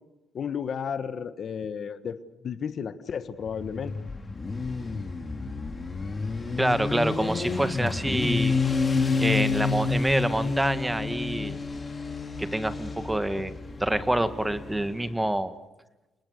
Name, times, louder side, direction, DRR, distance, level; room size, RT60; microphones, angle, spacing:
voice 1, 0.3-3.9, left 7 dB, 55° left, 12 dB, 1.4 m, -33 dB
Motorcycle, 3.4-15.1, left 4 dB, 25° left, 3.8 m, -29 dB
voice 2, 6.6-8.5 9.2-11.6 12.4-13.5 13.8-15.5, right 1 dB, 10° right, 12 dB, 1.7 m, -27 dB
29.5 x 20.0 x 6.6 m, 1.1 s
cardioid pair, 90°, 0 cm